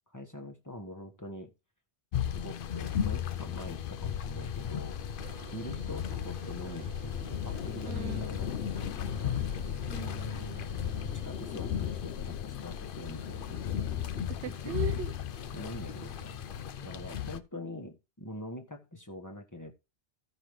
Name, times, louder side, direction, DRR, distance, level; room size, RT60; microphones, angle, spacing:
voice 1, 0.1-1.5 2.3-5.0 5.5-8.5 8.7-8.9 9.2-9.4 11.0-13.8 14.5-14.8 15.5-16.4 16.8-19.7, left 1 dB, 15° left, 1.1 m, -44 dB
sound 1, 2.1-17.4, left 9 dB, 60° left, 0.7 m, -35 dB
sound 2, 5.2-12.1, right 7 dB, 55° right, 0.8 m, -50 dB
sound 3, 7.1-16.7, left 8 dB, 80° left, 1.0 m, -43 dB
voice 2, 7.8-8.3 9.9-10.7 14.3-15.1 16.0-16.1, right 7 dB, 80° right, 1.0 m, -40 dB
15.0 x 5.4 x 3.1 m
omnidirectional pair, 1.1 m